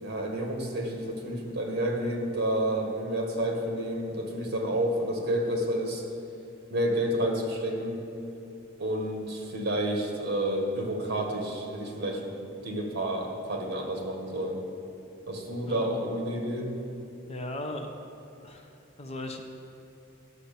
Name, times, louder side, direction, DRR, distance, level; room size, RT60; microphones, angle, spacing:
voice 1, 0.0-6.0 6.7-8.0 8.8-12.3 12.6-14.6 15.3-16.7, right 1 dB, 55° right, 1 dB, 1.7 m, -30 dB
voice 2, 17.3-17.9 18.4-18.7 19.0-19.5, left 1 dB, 30° left, 4 dB, 0.8 m, -37 dB
11.5 x 6.7 x 6.8 m, 2.9 s
head